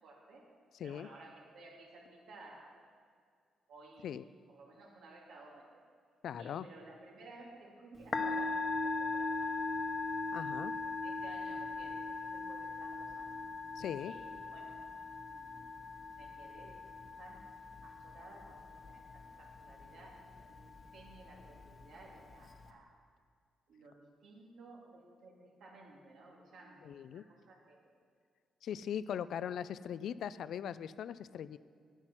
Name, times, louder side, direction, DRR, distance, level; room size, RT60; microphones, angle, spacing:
voice 1, 0.0-0.4 0.8-2.9 3.7-4.1 4.5-5.8 6.4-9.9 10.5-13.4 14.0-14.8 15.3-15.6 16.1-16.8 17.2-17.5 17.8-22.9 23.7-27.8, right 2 dB, 80° right, -2 dB, 2.5 m, -56 dB
voice 2, 6.2-6.7 10.3-10.7 13.8-14.1 26.8-27.2 28.6-31.6, left 9 dB, 75° left, 16 dB, 0.3 m, -40 dB
Musical instrument, 8.0-22.7, left 3 dB, 40° left, 1.0 m, -40 dB
9.6 x 8.9 x 6.0 m, 2.1 s
cardioid pair, 70°, 0 cm